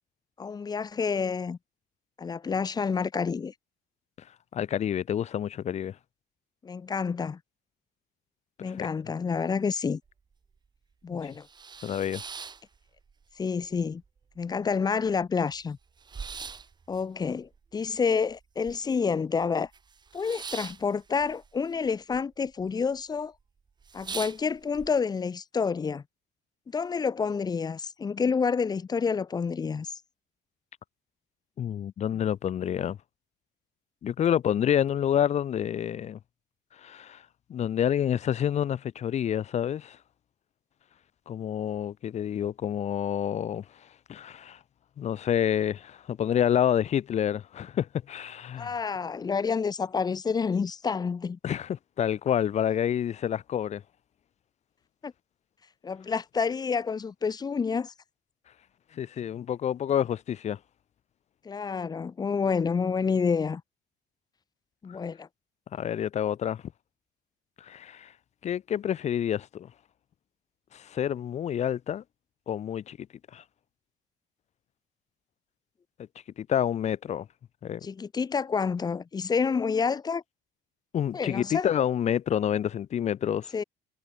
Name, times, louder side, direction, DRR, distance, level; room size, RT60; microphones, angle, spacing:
voice 1, 0.4-1.6 2.2-3.5 6.6-7.4 8.6-10.0 11.0-11.5 13.4-14.0 14.4-15.8 16.9-19.7 20.1-23.3 23.9-26.0 26.7-29.9 48.6-51.4 55.0-55.1 55.8-57.9 61.4-63.6 64.8-65.3 77.8-80.2 81.1-81.7 83.5-83.6, left 5 dB, 20° left, 1.5 m, -28 dB
voice 2, 4.5-5.9 8.6-8.9 11.1-11.2 11.8-12.2 31.6-33.0 34.0-36.2 36.8-37.2 37.5-40.0 41.3-43.6 44.1-44.6 45.0-48.8 51.4-53.8 58.9-60.6 65.7-66.6 67.6-68.1 68.4-69.7 70.7-72.0 72.5-73.0 73.3-73.4 76.4-77.3 77.6-77.8 80.9-83.5, left 9 dB, 40° left, 1.5 m, -28 dB
sound 1, 10.1-10.2 10.6-10.7 11.1-13.3 13.6-14.4 14.7-14.8 15.0-19.1 19.4-22.2 22.5-23.0 23.4-23.5 23.8-24.9, right 5 dB, 25° right, 7.3 m, -42 dB
cardioid pair, 170°, 18 cm